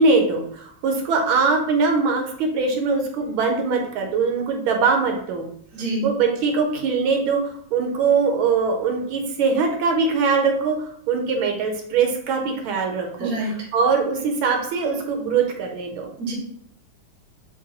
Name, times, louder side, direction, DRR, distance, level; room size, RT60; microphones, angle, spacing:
voice 1, 0.0-5.4 6.0-16.1, right 4 dB, 75° right, 2 dB, 1.4 m, -22 dB
voice 2, 5.7-6.0 13.2-13.5 16.2-16.3, right 1 dB, 30° right, -3 dB, 0.7 m, -26 dB
4.0 x 2.2 x 3.9 m, 0.64 s
omnidirectional pair, 2.3 m